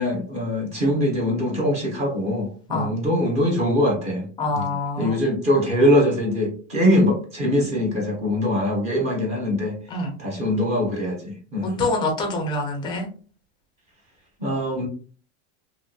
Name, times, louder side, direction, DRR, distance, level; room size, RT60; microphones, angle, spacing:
voice 1, 0.0-4.3 4.5-9.7 10.2-11.8 14.4-14.9, equal, 20° right, 0 dB, 0.7 m, -22 dB
voice 2, 4.4-5.2 9.9-10.2 11.6-13.1, left 2 dB, 15° left, 1 dB, 0.4 m, -25 dB
2.9 x 2.7 x 2.3 m, 0.40 s
supercardioid pair, 175°, 33 cm